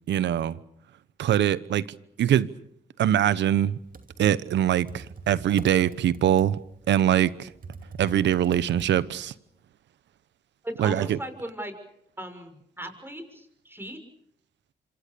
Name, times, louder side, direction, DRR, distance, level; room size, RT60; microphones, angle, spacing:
voice 1, 0.1-0.6 1.2-1.9 2.2-2.5 3.0-3.8 4.2-6.6 6.9-7.5 8.0-9.3 10.8-11.2, right 10 dB, 80° right, 1.0 m, -23 dB
Computer keyboard, 3.7-9.3, right 4 dB, 50° right, 2.7 m, -43 dB
voice 2, 10.6-11.7 12.2-14.0, right 1 dB, 10° right, 6.5 m, -37 dB
26.5 x 25.5 x 6.9 m
cardioid pair, 60°, 18 cm